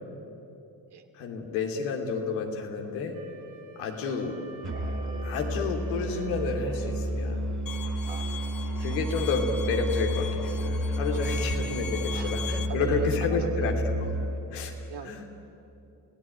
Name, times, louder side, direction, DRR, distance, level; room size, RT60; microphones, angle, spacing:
voice 1, 1.1-3.2 3.7-4.4 5.2-7.4 8.8-14.1 14.5-14.7 15.0-15.2, left 5 dB, 80° left, 2 dB, 3.1 m, -30 dB
Wind instrument woodwind instrument, 3.1-7.1, right 3 dB, 70° right, 5.9 m, -51 dB
Musical instrument, 4.6-14.5, right 1 dB, 40° right, 3.6 m, -31 dB
Bowed string instrument, 7.7-12.7, left 7 dB, 40° left, 2.1 m, -40 dB
voice 2, 8.1-8.5 8.8-9.0 11.1-11.4 12.1-12.3 12.7-13.7 14.9-15.3, right 7 dB, 55° right, 5 dB, 2.6 m, -40 dB
30.0 x 17.0 x 9.3 m, 2.9 s
hypercardioid pair, 55°, 48 cm